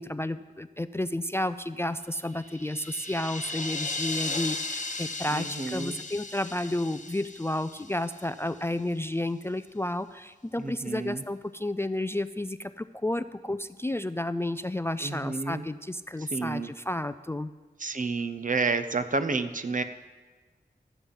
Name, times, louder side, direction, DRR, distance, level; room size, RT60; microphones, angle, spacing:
voice 1, 0.0-17.5, left 1 dB, 15° left, 13 dB, 0.3 m, -31 dB
sound 1, 2.3-8.5, left 3 dB, 45° left, 1.0 m, -36 dB
voice 2, 5.3-6.0 10.6-11.2 15.0-15.6 16.2-16.7 17.8-19.8, right 3 dB, 50° right, 9 dB, 0.7 m, -30 dB
13.0 x 7.3 x 5.4 m, 1.3 s
cardioid pair, 45°, 18 cm